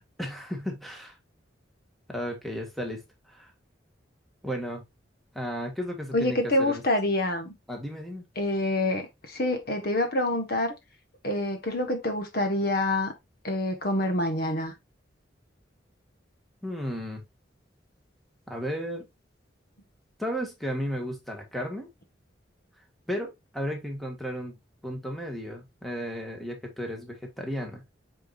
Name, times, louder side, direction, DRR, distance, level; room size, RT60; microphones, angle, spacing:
voice 1, 0.2-1.2 2.1-3.0 3.3-3.5 4.4-4.8 5.4-6.8 7.7-8.3 16.6-17.2 18.5-19.1 20.2-21.9 23.1-24.5 24.8-27.9, equal, ahead, 1.6 m, -34 dB
voice 2, 6.1-7.5 8.4-10.7 11.2-13.1 13.4-14.7, left 1 dB, 55° left, 1.3 m, -26 dB
8.4 x 4.6 x 2.5 m
head